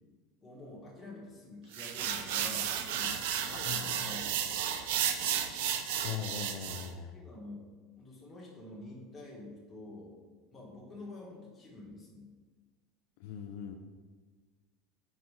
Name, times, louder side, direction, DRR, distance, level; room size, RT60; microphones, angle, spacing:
voice 1, 0.4-4.2 7.1-7.7 8.0-10.2 10.5-12.3, left 2 dB, 10° left, -5 dB, 1.5 m, -47 dB
sound 1, 1.7-6.9, right 9 dB, 75° right, 0.5 m, -33 dB
voice 2, 3.6-4.1 6.0-7.1 13.2-13.8, left 8 dB, 65° left, 4 dB, 0.5 m, -40 dB
4.8 x 4.4 x 5.7 m, 1.4 s
cardioid pair, 170°, 0 cm